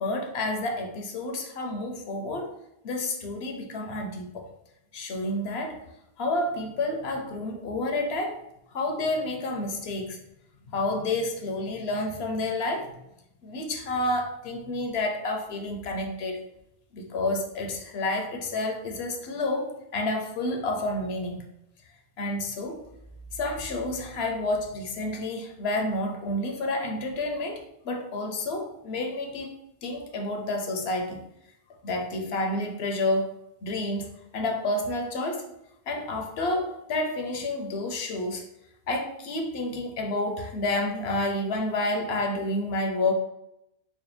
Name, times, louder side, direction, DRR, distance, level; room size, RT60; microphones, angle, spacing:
voice 1, 0.0-2.5 2.8-4.5 4.9-5.8 6.2-8.4 8.7-10.2 10.7-12.9 13.4-16.4 16.9-21.4 22.2-22.8 23.3-29.5 29.8-31.2 31.8-33.4 33.6-35.5 35.9-38.5 38.9-43.1, left 2 dB, 75° left, 3 dB, 0.9 m, -29 dB
4.2 x 2.2 x 3.1 m, 0.81 s
omnidirectional pair, 1.1 m